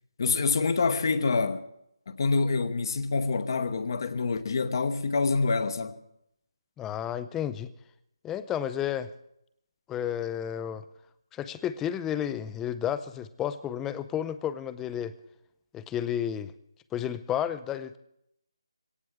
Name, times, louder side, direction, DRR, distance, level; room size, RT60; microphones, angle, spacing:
voice 1, 0.2-1.6 2.1-6.0, left 4 dB, 50° left, 1.0 m, -26 dB
voice 2, 6.8-7.7 8.2-9.1 9.9-10.8 11.3-15.1 15.7-16.5 16.9-18.0, left 10 dB, 10° left, 0.5 m, -32 dB
21.0 x 17.5 x 3.6 m
figure-of-eight pair, 155°, 3 cm